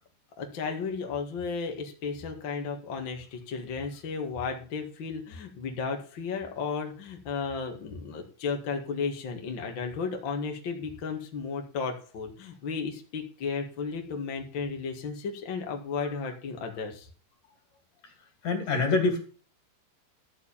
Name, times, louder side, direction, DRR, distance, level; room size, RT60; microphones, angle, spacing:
voice 1, 0.4-17.1, left 5 dB, 75° left, 3 dB, 1.0 m, -34 dB
voice 2, 18.4-19.2, left 3 dB, 50° left, 4 dB, 3.9 m, -25 dB
14.0 x 4.7 x 8.7 m, 0.39 s
omnidirectional pair, 5.5 m